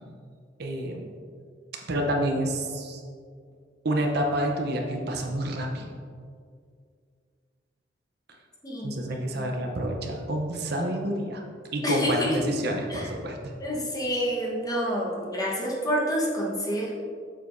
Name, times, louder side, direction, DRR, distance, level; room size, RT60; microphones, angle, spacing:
voice 1, 0.6-1.1 1.7-3.0 3.8-5.9 8.8-11.4 11.7-13.5, right 1 dB, 60° right, 2 dB, 0.8 m, -28 dB
voice 2, 8.6-9.5 11.8-12.4 12.9-13.1 13.6-16.9, equal, 20° left, -4 dB, 1.2 m, -28 dB
7.6 x 6.7 x 2.7 m, 2.2 s
head